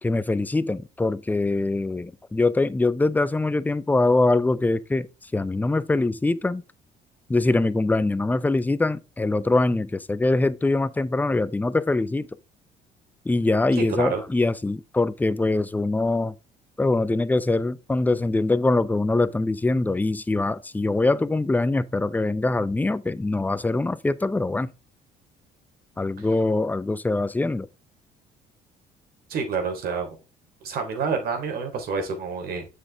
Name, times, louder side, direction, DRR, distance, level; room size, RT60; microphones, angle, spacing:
voice 1, 0.0-5.1 5.3-6.6 7.3-12.3 13.3-16.4 16.8-24.7 26.0-27.7, left 2 dB, 10° left, 0.6 m, -23 dB
voice 2, 13.8-14.2 29.3-30.2 30.6-32.7, right 5 dB, 65° right, 3.4 m, -28 dB
7.6 x 6.5 x 3.5 m
cardioid pair, 110°, 17 cm